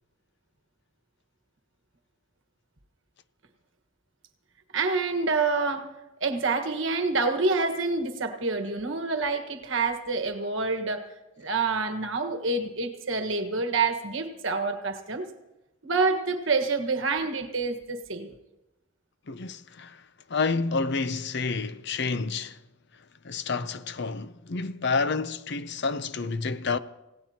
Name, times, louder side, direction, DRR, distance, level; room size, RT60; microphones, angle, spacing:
voice 1, 4.7-5.9 6.2-11.1 11.4-15.3 15.8-18.3, right 4 dB, 65° right, 1.5 m, -27 dB
voice 2, 19.3-20.0 20.3-22.6 23.2-26.8, left 4 dB, 55° left, 0.6 m, -29 dB
27.0 x 17.0 x 2.9 m
head